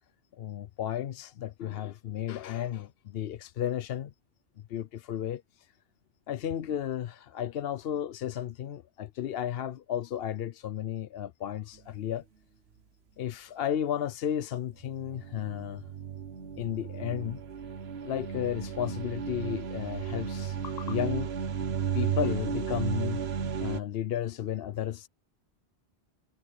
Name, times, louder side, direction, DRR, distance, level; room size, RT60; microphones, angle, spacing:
voice 1, 0.4-4.1 4.7-5.4 6.3-12.2 13.2-15.8 16.6-17.4 18.0-21.3 21.9-23.2 23.6-25.1, left 10 dB, 70° left, 0.8 m, -33 dB
sound 1, 14.8-23.8, right 7 dB, 75° right, 1.3 m, -34 dB
omnidirectional pair, 1.1 m